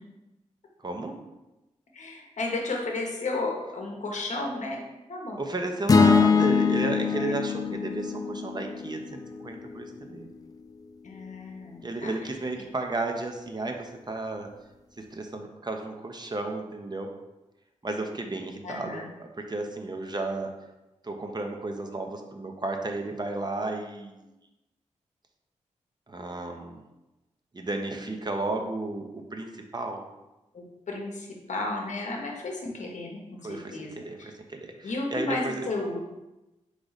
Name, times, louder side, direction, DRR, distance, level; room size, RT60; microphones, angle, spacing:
voice 1, 0.8-1.2 5.4-10.3 11.8-14.5 15.0-17.1 17.8-20.5 21.0-24.2 26.1-26.8 27.5-30.0 33.4-35.7, right 2 dB, 35° right, 3 dB, 0.7 m, -33 dB
voice 2, 1.9-4.8 5.1-5.4 7.1-7.4 11.0-12.1 18.6-19.1 30.5-33.9 34.2-34.3 34.8-36.0, left 2 dB, 65° left, 0 dB, 0.9 m, -33 dB
sound 1, 5.9-10.2, left 5 dB, 30° left, 0.3 m, -24 dB
3.7 x 3.2 x 4.0 m, 1.0 s
cardioid pair, 45°, 13 cm